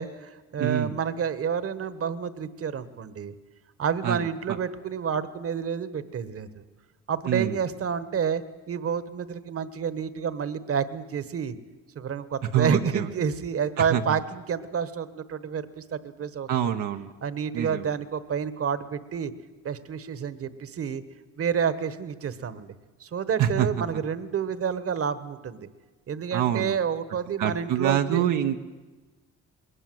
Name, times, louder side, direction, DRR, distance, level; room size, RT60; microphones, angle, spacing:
voice 1, 0.0-3.3 3.8-6.6 7.1-11.5 11.9-16.7 17.2-19.3 19.6-21.0 21.4-22.7 23.0-25.7 26.1-28.2, right 7 dB, 50° right, 14 dB, 1.3 m, -29 dB
voice 2, 0.6-0.9 4.0-4.3 7.3-7.6 12.5-13.1 13.9-14.0 16.5-17.1 17.5-17.9 23.4-23.8 26.3-26.8 27.4-28.6, right 10 dB, 80° right, 4 dB, 1.0 m, -25 dB
20.5 x 19.5 x 7.8 m, 1.2 s
cardioid pair, 90°, 30 cm